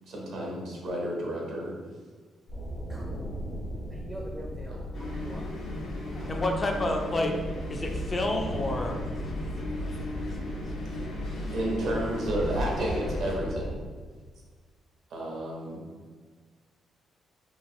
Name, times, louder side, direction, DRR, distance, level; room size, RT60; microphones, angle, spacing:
voice 1, 0.1-1.7 11.5-13.8 15.1-15.8, right 1 dB, 70° right, -2 dB, 0.8 m, -31 dB
sound 1, 2.5-13.7, equal, 55° left, 1.0 m, -36 dB
voice 2, 2.9-3.3 3.9-5.4 6.1-6.6, equal, 15° right, -1 dB, 0.5 m, -44 dB
sound 2, 4.9-13.3, left 2 dB, 75° left, 0.8 m, -38 dB
voice 3, 6.1-7.3 7.7-9.0, left 2 dB, 35° left, 3 dB, 0.5 m, -29 dB
3.1 x 2.4 x 2.7 m, 1.5 s
supercardioid pair, 60°, 0 cm